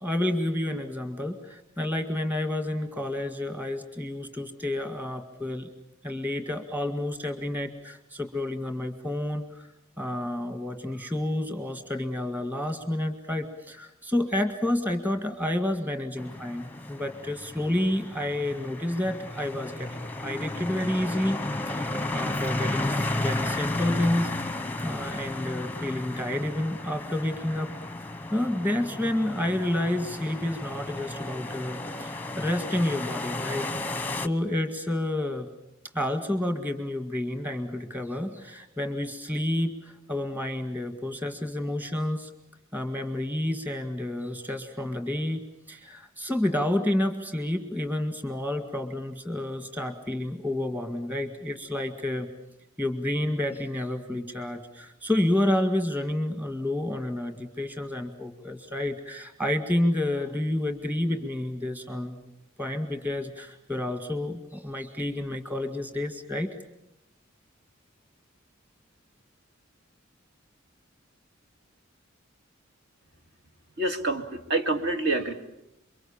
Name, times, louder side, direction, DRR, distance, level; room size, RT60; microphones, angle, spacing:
voice 1, 0.0-5.7 6.0-9.7 10.0-21.4 21.7-21.8 22.1-24.3 24.8-27.7 28.3-33.7 34.2-35.5 35.9-42.3 42.7-52.3 52.8-62.3 62.6-66.5, left 1 dB, 10° right, 7 dB, 1.9 m, -29 dB
sound 1, 16.2-34.3, left 2 dB, 10° left, 0.9 m, -33 dB
voice 2, 73.8-75.3, right 2 dB, 55° right, 5 dB, 2.4 m, -27 dB
28.0 x 23.5 x 7.2 m, 0.84 s
head